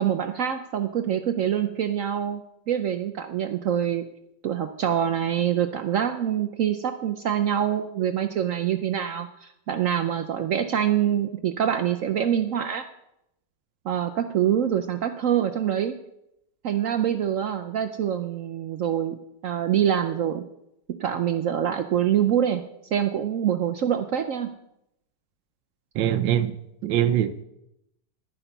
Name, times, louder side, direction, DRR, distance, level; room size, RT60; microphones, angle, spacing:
voice 1, 0.0-4.0 4.4-12.8 13.8-16.0 16.6-19.2 19.4-20.4 21.0-22.6 22.9-24.5, right 9 dB, 65° right, 0.8 m, -25 dB
voice 2, 25.9-27.4, right 10 dB, 85° right, 1.3 m, -23 dB
11.5 x 10.0 x 5.5 m
omnidirectional pair, 1.9 m